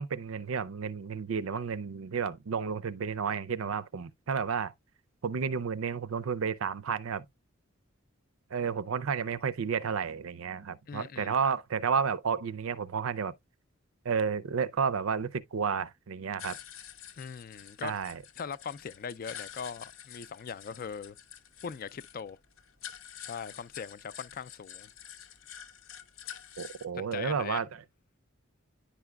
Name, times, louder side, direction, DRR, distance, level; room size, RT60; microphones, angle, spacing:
voice 1, 0.0-4.7 5.2-7.2 8.5-13.3 14.0-16.6 17.8-18.2 26.6-27.7, right 6 dB, 85° right, 0.5 m, -31 dB
voice 2, 10.9-11.3 17.2-17.9 18.4-21.2 21.6-22.4 23.2-24.9 26.9-27.6, left 6 dB, 45° left, 0.3 m, -40 dB
sound 1, 16.4-26.9, left 9 dB, 75° left, 0.7 m, -48 dB
10.0 x 4.9 x 2.2 m
head